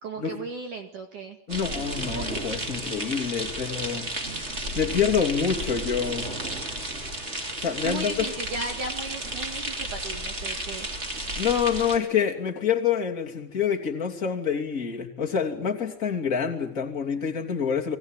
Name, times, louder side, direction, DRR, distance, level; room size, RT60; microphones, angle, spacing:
voice 1, 0.0-1.4 7.8-10.9, right 3 dB, 55° right, 5 dB, 2.8 m, -36 dB
voice 2, 1.5-4.1 4.7-6.3 7.6-8.3 11.3-18.0, left 7 dB, 25° left, 1 dB, 2.3 m, -27 dB
sound 1, 1.5-12.0, right 1 dB, 15° right, 2.8 m, -33 dB
29.5 x 21.5 x 9.1 m, 0.72 s
omnidirectional pair, 5.4 m